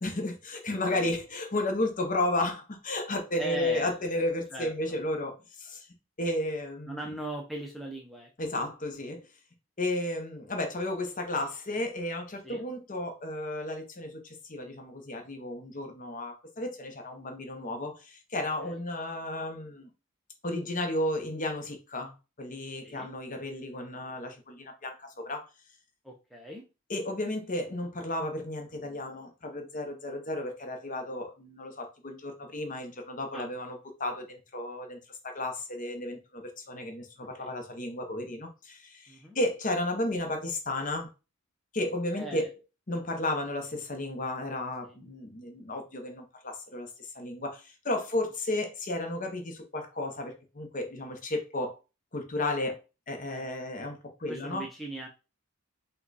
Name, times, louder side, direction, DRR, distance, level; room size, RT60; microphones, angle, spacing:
voice 1, 0.0-5.9 6.2-7.0 8.4-9.3 9.8-19.9 20.4-25.5 26.9-41.1 41.7-42.5 42.9-51.8 52.1-52.8 53.1-54.7, left 1 dB, 35° left, 0.9 m, -33 dB
voice 2, 0.7-1.1 3.4-3.9 4.5-4.7 6.9-8.3 12.4-12.6 18.6-18.8 22.8-23.1 26.0-26.6 33.3-33.5 37.3-37.5 39.1-39.4 42.1-42.5 53.3-53.4 54.3-55.1, right 1 dB, ahead, 0.6 m, -39 dB
5.6 x 2.3 x 4.0 m
head